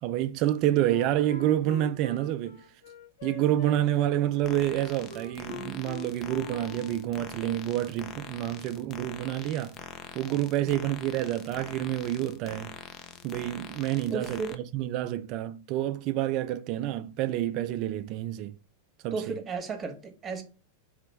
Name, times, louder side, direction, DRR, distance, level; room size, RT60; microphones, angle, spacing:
voice 1, 0.0-2.6 3.2-9.8 10.1-12.7 13.2-18.6 19.0-19.3, right 13 dB, 40° right, 0.3 m, -28 dB
Wind instrument woodwind instrument, 0.9-7.2, left 3 dB, 65° left, 0.8 m, -43 dB
sound 1, 4.4-14.6, left 7 dB, 30° left, 0.5 m, -44 dB
voice 2, 10.7-11.0 14.1-14.6 19.1-20.4, right 4 dB, 20° right, 1.1 m, -35 dB
4.0 x 3.0 x 4.4 m
figure-of-eight pair, 90°, 0 cm